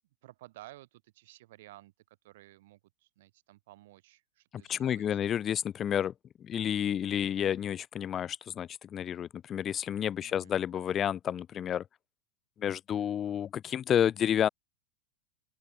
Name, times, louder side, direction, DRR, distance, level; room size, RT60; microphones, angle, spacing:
voice 1, 0.2-5.2 10.2-10.6, right 17 dB, 55° right, 6.5 m, -54 dB
voice 2, 4.7-6.1 6.4-11.8 12.6-14.5, left 9 dB, 25° left, 0.4 m, -30 dB
open air
figure-of-eight pair, 90°, 0 cm